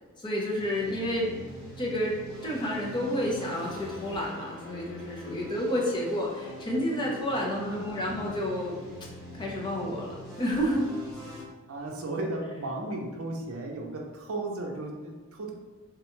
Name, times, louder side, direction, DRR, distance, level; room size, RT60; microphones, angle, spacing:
voice 1, 0.2-1.3 1.8-2.1 2.4-8.8 9.4-10.9, equal, 20° left, -3 dB, 0.6 m, -30 dB
sound 1, 0.6-11.4, equal, ahead, 0.9 m, -44 dB
voice 2, 7.7-8.2 11.7-15.5, right 2 dB, 65° right, 0 dB, 0.6 m, -35 dB
3.5 x 2.2 x 3.0 m, 1.4 s
head